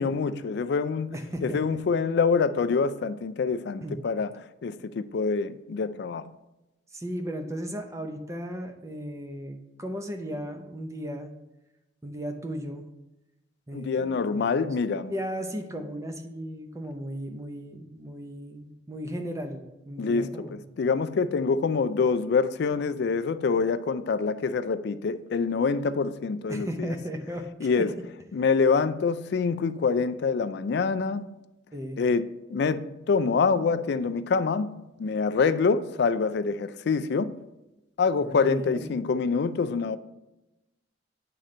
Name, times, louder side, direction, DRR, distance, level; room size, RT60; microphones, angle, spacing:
voice 1, 0.0-1.1 1.4-4.3 4.6-6.3 13.7-15.1 20.0-26.9 27.6-28.0 28.3-31.2 32.0-37.4 38.0-40.0, left 5 dB, 60° left, 0.3 m, -26 dB
voice 2, 1.1-1.8 3.8-4.0 6.9-11.3 12.0-12.9 13.7-14.7 15.1-20.7 26.5-27.9 31.7-32.0 38.2-38.9, equal, 15° right, 0.6 m, -36 dB
9.0 x 3.8 x 4.3 m
head